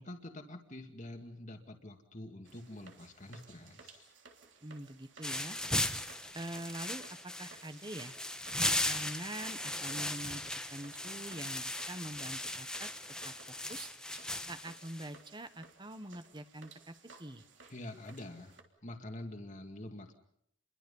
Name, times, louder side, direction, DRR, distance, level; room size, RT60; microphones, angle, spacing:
voice 1, 0.0-4.1 17.7-20.1, left 1 dB, 40° left, 4 dB, 2.2 m, -46 dB
sound 1, 2.4-18.6, right 4 dB, 70° right, 3.2 m, -59 dB
voice 2, 4.6-5.6 6.3-8.1 8.6-10.4 10.7-12.9 13.2-13.3 13.7-13.9 14.5-17.4, right 1 dB, 25° right, 10 dB, 1.3 m, -44 dB
sound 2, 5.2-15.1, left 1 dB, 5° left, 1.2 m, -37 dB
29.0 x 23.0 x 5.5 m, 0.72 s
head